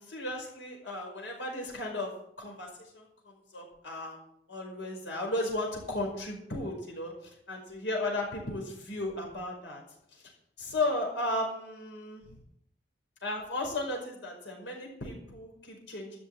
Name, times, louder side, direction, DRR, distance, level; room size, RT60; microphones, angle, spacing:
voice 1, 0.0-2.1 2.4-4.2 4.5-9.8 10.1-10.3 10.6-12.3 13.2-16.2, left 2 dB, 90° left, 0 dB, 5.3 m, -35 dB
13.0 x 6.7 x 8.8 m, 0.73 s
head